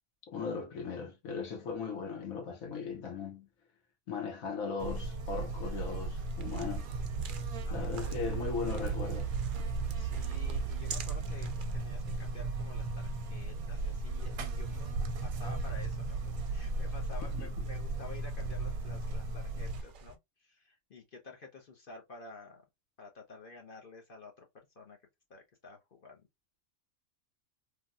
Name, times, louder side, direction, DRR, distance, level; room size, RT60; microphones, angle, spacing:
voice 1, 0.3-3.5 4.1-6.9 7.7-9.3 17.3-17.5, left 5 dB, 75° left, 1.3 m, -38 dB
Buzz, 4.8-19.8, right 3 dB, 90° right, 1.1 m, -36 dB
sound 1, 6.3-20.1, right 3 dB, 65° right, 0.5 m, -46 dB
voice 2, 7.6-8.5 9.9-22.6 23.0-24.5 24.8-25.0 25.3-26.3, left 3 dB, 45° left, 0.8 m, -51 dB
3.3 x 2.2 x 2.4 m
omnidirectional pair, 1.5 m